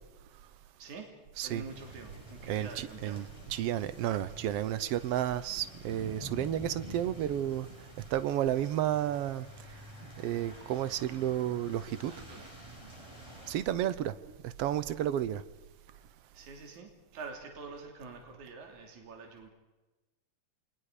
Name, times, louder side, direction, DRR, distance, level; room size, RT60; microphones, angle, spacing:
voice 1, 0.8-3.4 12.1-12.6 16.3-19.5, right 4 dB, 60° right, 4.3 m, -46 dB
sound 1, 1.6-13.6, right 1 dB, 10° right, 5.9 m, -49 dB
voice 2, 2.5-9.8 10.2-12.1 13.5-14.2 14.4-15.4, right 11 dB, 80° right, 1.3 m, -32 dB
29.5 x 23.5 x 5.0 m
omnidirectional pair, 3.8 m